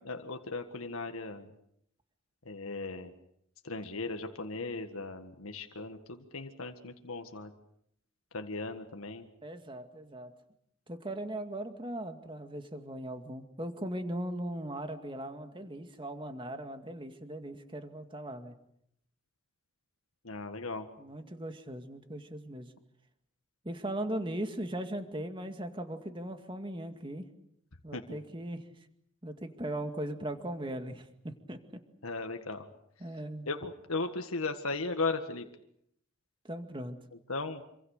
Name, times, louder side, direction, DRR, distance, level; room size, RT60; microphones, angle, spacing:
voice 1, 0.0-1.5 2.4-3.1 3.6-7.5 8.3-9.2 20.2-20.9 27.9-28.2 32.0-32.6 33.5-35.4 37.3-37.6, left 3 dB, 85° left, 5 dB, 1.8 m, -37 dB
voice 2, 9.4-10.3 10.9-18.6 21.0-22.7 23.6-27.3 27.8-28.6 29.2-31.6 33.0-33.5 36.4-37.0, right 1 dB, 25° right, 7 dB, 2.2 m, -39 dB
27.0 x 26.0 x 6.7 m, 0.73 s
head